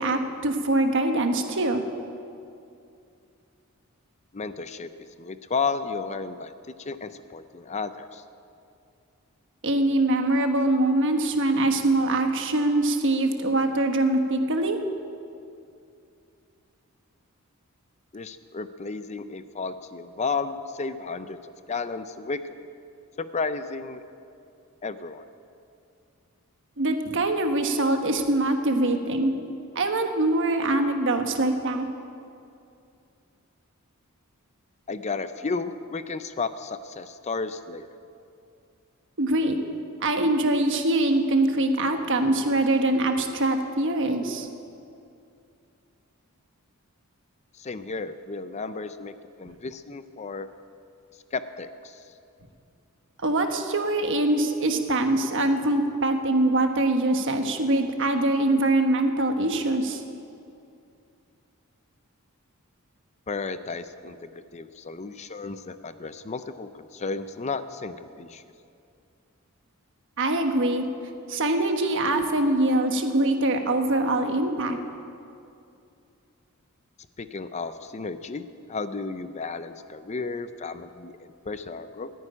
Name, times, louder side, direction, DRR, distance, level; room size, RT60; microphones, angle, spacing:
voice 1, 0.0-1.8 9.6-14.8 26.8-29.3 29.7-31.9 39.2-39.6 40.0-44.5 53.2-60.0 70.2-70.8 71.3-74.8, right 2 dB, 60° right, 5 dB, 1.3 m, -23 dB
voice 2, 4.3-4.9 5.2-6.5 6.8-8.2 18.1-22.6 23.2-24.0 24.8-25.2 34.9-37.9 47.6-49.1 49.4-50.5 51.3-52.0 63.3-68.4 77.2-82.1, left 4 dB, 30° left, 11 dB, 0.5 m, -33 dB
14.5 x 9.4 x 9.9 m, 2.5 s
head